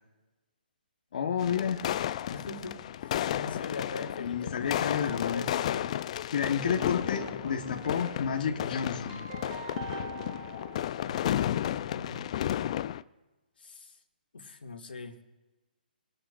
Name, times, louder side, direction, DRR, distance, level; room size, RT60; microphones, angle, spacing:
voice 1, 1.1-1.9 4.2-5.5 6.3-9.2, left 7 dB, 55° left, 1 dB, 1.2 m, -30 dB
sound 1, 1.4-13.0, left 11 dB, 40° left, 0.4 m, -33 dB
voice 2, 2.2-2.7 3.0-5.9 6.3-6.4 11.1-12.2 13.6-13.9 14.3-15.2, left 3 dB, 85° left, 3 dB, 2.1 m, -42 dB
Keyboard (musical), 6.6-11.6, right 4 dB, 45° right, 1.8 m, -44 dB
28.5 x 13.0 x 2.5 m, 1.2 s
hypercardioid pair, 150°, 5 cm